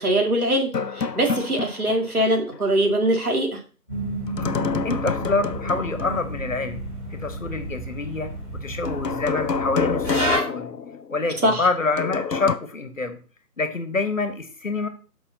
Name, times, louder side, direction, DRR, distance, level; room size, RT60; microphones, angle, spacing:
voice 1, 0.0-3.6 11.4-11.7, right 1 dB, 65° right, 2 dB, 2.4 m, -22 dB
sound 1, 0.7-2.2 2.5-2.6 4.3-6.3 8.9-11.3 12.0-12.6, left 5 dB, 85° left, 0.8 m, -27 dB
sound 2, 3.9-10.4, right 1 dB, 5° right, 3.5 m, -31 dB
voice 2, 4.8-8.3 8.6-10.7 11.1-13.2 13.6-14.9, left 3 dB, 55° left, 9 dB, 1.4 m, -27 dB
12.5 x 5.7 x 2.8 m, 0.38 s
figure-of-eight pair, 160°, 48 cm